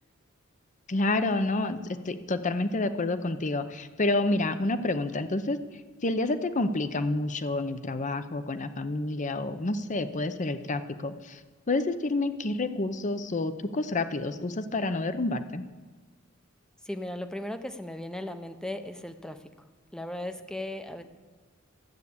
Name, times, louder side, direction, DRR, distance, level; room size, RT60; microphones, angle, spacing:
voice 1, 0.9-1.8 2.1-5.6 6.0-11.4 11.7-15.6, left 2 dB, 35° left, 11 dB, 0.7 m, -29 dB
voice 2, 16.8-19.4 19.9-21.0, left 1 dB, 5° left, 8 dB, 0.7 m, -36 dB
13.0 x 8.2 x 8.5 m, 1.3 s
head